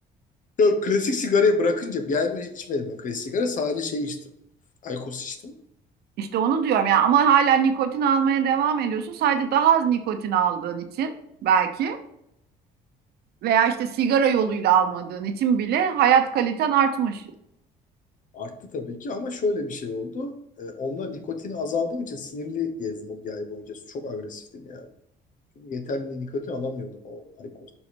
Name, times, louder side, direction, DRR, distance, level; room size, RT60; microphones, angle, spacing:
voice 1, 0.6-4.2 4.8-5.6 18.3-24.9 25.6-27.7, left 3 dB, 50° left, 7 dB, 1.0 m, -28 dB
voice 2, 6.2-11.1 11.4-12.0 13.4-17.2, right 8 dB, 70° right, 8 dB, 0.8 m, -21 dB
5.4 x 4.4 x 4.4 m, 0.78 s
cardioid pair, 110°, 17 cm